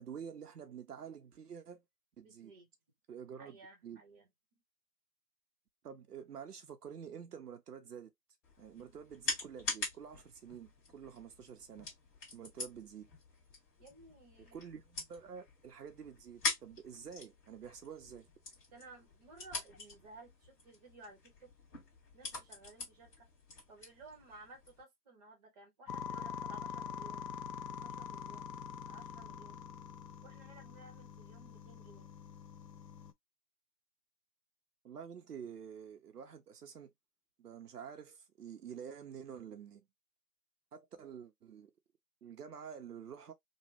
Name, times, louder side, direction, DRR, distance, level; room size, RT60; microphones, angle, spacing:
voice 1, 0.0-1.8 2.2-2.5 3.1-3.6 3.8-4.0 5.8-8.1 8.6-11.9 12.3-13.1 14.5-18.3 34.8-36.9 37.4-39.8 40.7-41.7 42.2-43.3, right 7 dB, 70° right, 0.8 m, -48 dB
voice 2, 2.2-2.7 3.4-4.3 13.8-14.6 18.7-21.5 22.1-23.3 23.7-27.3 27.8-28.5 28.9-29.6 30.2-32.1 40.9-41.0, right 2 dB, 25° right, 1.0 m, -57 dB
sound 1, 8.4-24.8, left 3 dB, 15° left, 1.7 m, -44 dB
sound 2, 25.9-33.1, left 7 dB, 85° left, 0.8 m, -45 dB
3.1 x 2.2 x 3.0 m
hypercardioid pair, 150°, 49 cm